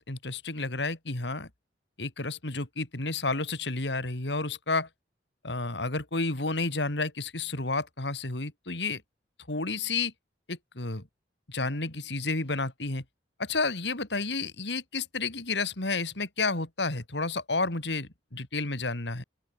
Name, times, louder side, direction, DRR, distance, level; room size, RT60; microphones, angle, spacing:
voice 1, 0.0-1.5 2.0-4.9 5.4-9.0 9.5-10.1 10.5-11.0 11.5-13.0 13.4-19.2, left 3 dB, 70° left, 3.1 m, -31 dB
open air
head